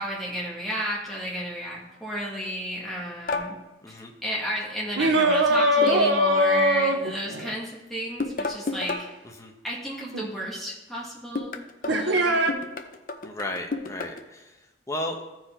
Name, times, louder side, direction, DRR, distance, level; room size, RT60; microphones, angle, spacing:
voice 1, 0.0-3.6 3.9-9.1 9.6-12.7, equal, ahead, -5 dB, 1.8 m, -33 dB
sound 1, 3.3-3.5 5.8-6.2 8.2-9.1 11.4-14.2, left 3 dB, 45° left, 0.6 m, -31 dB
voice 2, 3.8-4.1 9.2-9.5 13.2-15.3, left 1 dB, 15° left, 1 dB, 1.0 m, -35 dB
sound 2, 5.0-7.5 10.1-10.2 11.9-12.5, right 1 dB, 80° right, 0.9 m, -21 dB
14.0 x 4.7 x 4.4 m, 1.0 s
head